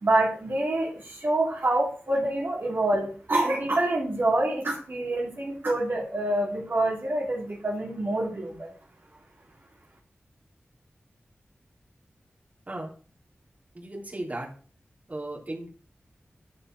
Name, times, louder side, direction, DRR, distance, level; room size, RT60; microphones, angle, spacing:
voice 1, 0.0-8.7, right 1 dB, 55° right, -2 dB, 3.1 m, -26 dB
voice 2, 13.7-14.5 15.1-15.7, right 1 dB, 35° right, -3 dB, 3.3 m, -35 dB
11.0 x 5.6 x 6.1 m, 0.41 s
wide cardioid pair, 100°, 4 cm